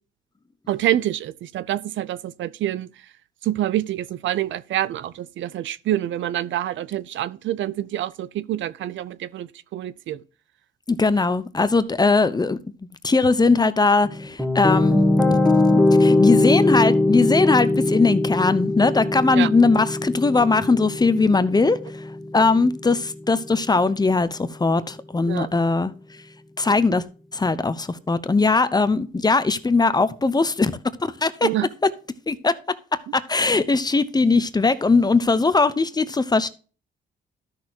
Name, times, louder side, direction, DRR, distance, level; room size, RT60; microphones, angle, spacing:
voice 1, 0.7-2.9 3.4-10.2 19.3-19.5 25.3-25.5 31.4-31.7, right 13 dB, 70° right, 0.6 m, -26 dB
voice 2, 10.9-12.6 13.0-15.0 15.3-15.4 16.0-21.8 22.3-25.9 26.6-27.0 27.3-30.7 31.0-31.5 31.8-31.9 32.3-32.8 33.1-36.5, left 3 dB, 20° left, 0.8 m, -20 dB
sound 1, 14.0-23.1, left 2 dB, ahead, 1.4 m, -21 dB
13.0 x 6.3 x 2.9 m
cardioid pair, 90°, 20 cm